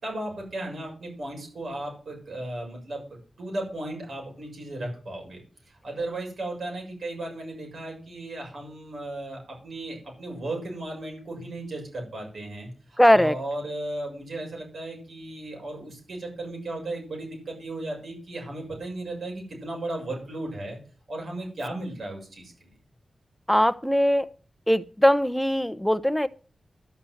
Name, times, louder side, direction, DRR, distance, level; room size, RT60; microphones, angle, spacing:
voice 1, 0.0-3.0 3.4-5.4 5.7-20.8 21.1-22.7, right 2 dB, 70° right, 6.9 m, -35 dB
voice 2, 13.0-13.4 23.5-24.3 24.7-26.3, equal, 5° left, 0.7 m, -20 dB
12.5 x 6.1 x 7.7 m
cardioid pair, 65°, 0 cm